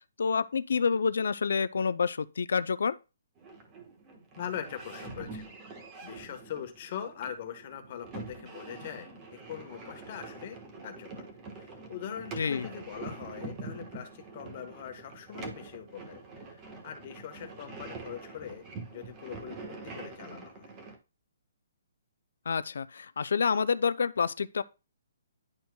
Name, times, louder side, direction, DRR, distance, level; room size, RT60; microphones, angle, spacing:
voice 1, 0.2-2.9 12.4-12.7 22.5-24.6, left 5 dB, 75° left, 0.4 m, -28 dB
sound 1, 3.4-21.0, right 3 dB, 20° right, 1.2 m, -45 dB
voice 2, 4.4-5.5 6.0-11.3 11.5-16.2 16.5-20.7, left 9 dB, 40° left, 1.2 m, -42 dB
11.0 x 4.3 x 2.2 m
hypercardioid pair, 160°, 0 cm